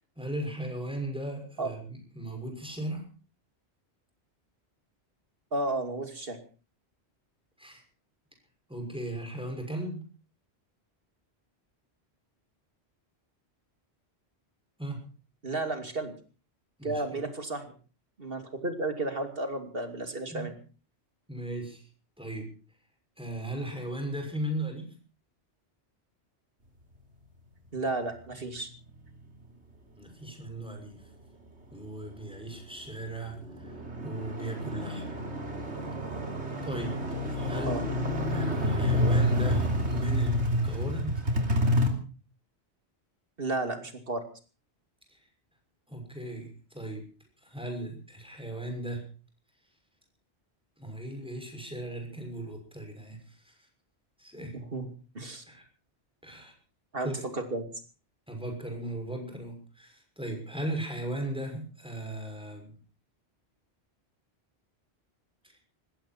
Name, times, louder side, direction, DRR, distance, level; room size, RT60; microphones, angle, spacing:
voice 1, 0.2-3.0 7.6-7.8 8.7-10.0 14.8-15.1 16.8-17.3 20.3-20.5 21.3-21.8 22.2-22.5 23.2-24.9 30.0-31.0 31.7-33.7 34.0-35.0 36.6-37.0 37.3-37.8 38.3-41.2 45.1-45.2 45.9-47.1 47.4-49.0 50.8-53.6 54.2-54.6 55.5-55.6 56.2-56.5 57.0-57.2 58.3-62.7 65.4-65.6, right 1 dB, 5° right, 3 dB, 6.3 m, -37 dB
voice 2, 5.5-6.4 15.4-16.1 16.8-17.7 18.2-20.5 27.7-28.7 37.7-37.8 43.4-44.2 54.5-54.9 55.1-55.4 56.9-57.7, right 2 dB, 55° right, 7 dB, 3.0 m, -33 dB
sound 1, 32.6-32.7 33.1-41.9, equal, 85° right, 3.5 m, -28 dB
20.5 x 16.0 x 4.4 m, 0.37 s
omnidirectional pair, 1.1 m